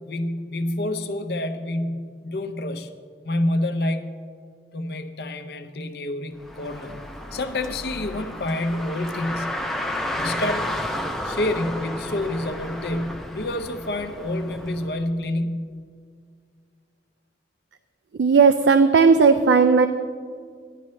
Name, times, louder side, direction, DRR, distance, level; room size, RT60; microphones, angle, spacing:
voice 1, 0.0-2.9 3.2-4.1 4.7-7.0 7.3-9.6 10.2-10.7 11.2-15.7, left 1 dB, 60° left, 9 dB, 0.7 m, -28 dB
Car, 6.4-15.0, left 1 dB, ahead, 0.4 m, -32 dB
voice 2, 18.2-19.9, right 5 dB, 75° right, 8 dB, 0.4 m, -15 dB
14.5 x 11.0 x 3.2 m, 2.1 s
head